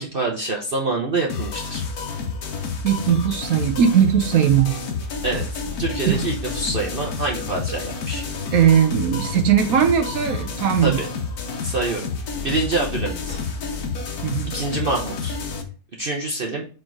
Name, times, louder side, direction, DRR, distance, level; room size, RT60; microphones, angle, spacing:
voice 1, 0.0-1.8 5.2-8.2 10.8-11.1 11.6-12.1 12.4-13.4 14.5-15.4 16.0-16.6, right 3 dB, 45° right, -1 dB, 0.9 m, -26 dB
sound 1, 1.3-15.6, left 4 dB, 80° left, 1.5 m, -29 dB
voice 2, 2.8-4.8 6.1-6.2 8.5-11.0 14.2-14.6, right 8 dB, 70° right, 6 dB, 1.1 m, -18 dB
4.6 x 4.4 x 4.6 m, 0.37 s
omnidirectional pair, 1.6 m